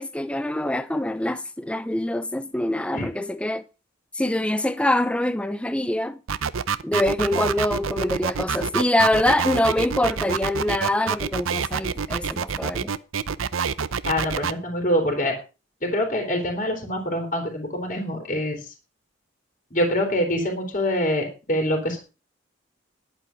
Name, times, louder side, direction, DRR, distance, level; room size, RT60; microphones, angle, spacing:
voice 1, 0.0-3.6 4.1-6.2 6.8-12.9, left 1 dB, 5° left, 0.5 m, -24 dB
sound 1, 6.3-14.5, right 6 dB, 85° right, 0.7 m, -26 dB
voice 2, 14.0-15.3 15.8-18.7 19.7-22.0, equal, 40° left, 3.5 m, -25 dB
11.5 x 8.9 x 5.8 m
head